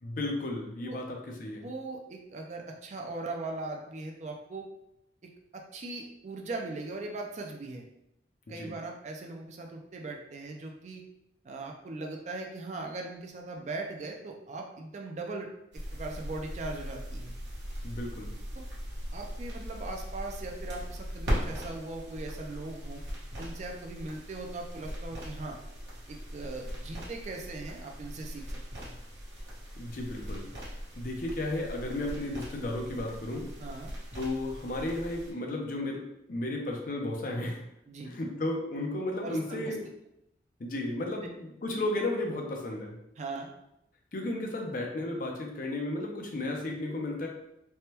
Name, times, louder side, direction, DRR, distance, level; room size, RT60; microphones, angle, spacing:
voice 1, 0.0-1.7 8.6-8.7 17.8-18.3 29.8-30.4 31.0-33.5 34.1-36.0 36.3-37.6 38.0-39.8 40.6-42.9 44.1-47.3, left 1 dB, 45° left, 1 dB, 0.5 m, -33 dB
voice 2, 1.6-4.7 5.2-7.9 8.5-11.0 11.4-15.5 15.9-17.3 18.5-18.6 19.1-23.0 23.4-25.6 26.1-29.0 33.6-33.9 37.9-38.1 39.2-39.8 43.2-43.5, right 2 dB, 40° right, 1 dB, 0.4 m, -39 dB
sound 1, 15.7-35.3, equal, 75° right, 1.0 m, -39 dB
3.3 x 2.2 x 2.8 m, 0.82 s
head